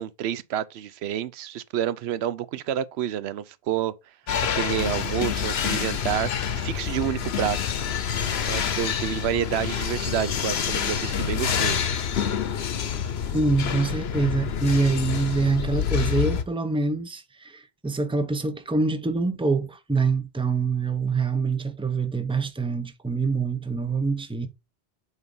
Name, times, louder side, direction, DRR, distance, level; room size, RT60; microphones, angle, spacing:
voice 1, 0.0-3.9 4.5-7.6 8.0-8.1 8.5-11.8, right 10 dB, 85° right, 0.8 m, -29 dB
sound 1, 4.3-16.4, left 8 dB, 80° left, 1.0 m, -27 dB
voice 2, 13.3-24.5, right 4 dB, 5° right, 0.6 m, -25 dB
8.2 x 2.7 x 5.3 m
omnidirectional pair, 1.1 m